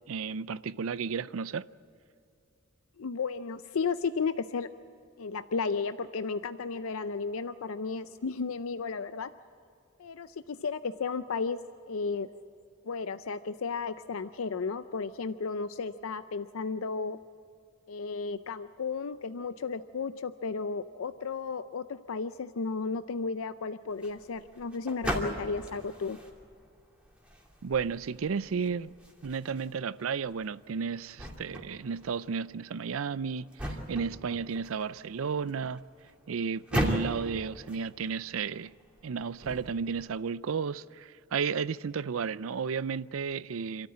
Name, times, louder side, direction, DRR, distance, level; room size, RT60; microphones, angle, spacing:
voice 1, 0.1-1.7 27.6-28.9 29.2-35.8 36.3-38.7 39.0-43.9, right 6 dB, 80° right, 0.5 m, -33 dB
voice 2, 3.0-4.7 5.2-9.3 10.0-11.6 11.9-12.3 12.8-17.2 17.9-26.2, left 4 dB, 90° left, 0.5 m, -34 dB
sound 1, 23.9-40.1, equal, 5° right, 2.6 m, -39 dB
27.5 x 13.5 x 8.6 m
head